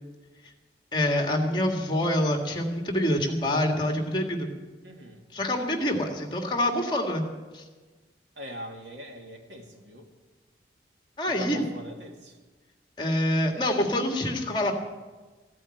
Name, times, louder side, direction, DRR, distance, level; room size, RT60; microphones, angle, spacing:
voice 1, 0.9-4.5 5.3-7.2 7.5-7.6 11.2-11.6 13.0-14.7, left 1 dB, 25° left, 3 dB, 1.9 m, -26 dB
voice 2, 4.8-5.3 8.4-10.1 11.3-12.4, equal, 80° right, 3 dB, 2.2 m, -42 dB
15.5 x 8.9 x 8.9 m, 1.3 s
head